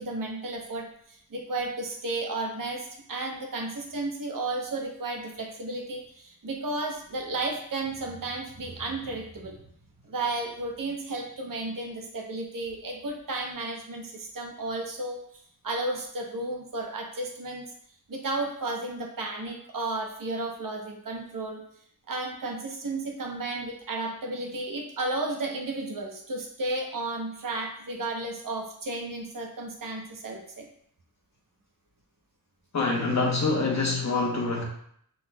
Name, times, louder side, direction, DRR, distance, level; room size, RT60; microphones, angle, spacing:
voice 1, 0.0-9.6 10.0-17.6 18.1-21.6 22.1-30.7, right 2 dB, 60° right, 1 dB, 0.9 m, -33 dB
voice 2, 32.7-34.6, left 3 dB, 50° left, -1 dB, 1.0 m, -25 dB
5.9 x 3.8 x 2.3 m, 0.66 s
wide cardioid pair, 135°, 36 cm